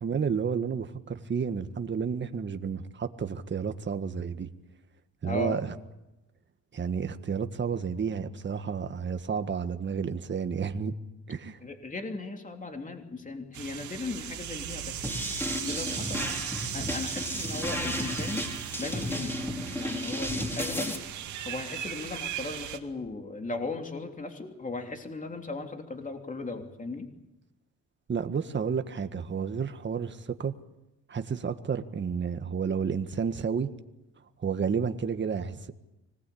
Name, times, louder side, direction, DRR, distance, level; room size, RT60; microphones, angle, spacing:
voice 1, 0.0-4.5 5.2-5.7 6.7-10.9 11.3-11.6 28.1-30.5 31.1-33.7 34.4-35.7, right 6 dB, 40° right, 8 dB, 1.6 m, -31 dB
voice 2, 5.2-5.6 11.6-15.0 15.4-16.2 16.7-18.4 18.8-19.4 19.7-20.9 21.4-27.1, left 3 dB, 25° left, 4 dB, 3.3 m, -37 dB
sound 1, 13.5-22.8, right 10 dB, 75° right, 2.3 m, -38 dB
sound 2, 15.0-21.0, left 1 dB, 10° left, 5.2 m, -33 dB
25.5 x 19.5 x 8.7 m, 0.96 s
cardioid pair, 90°, 30 cm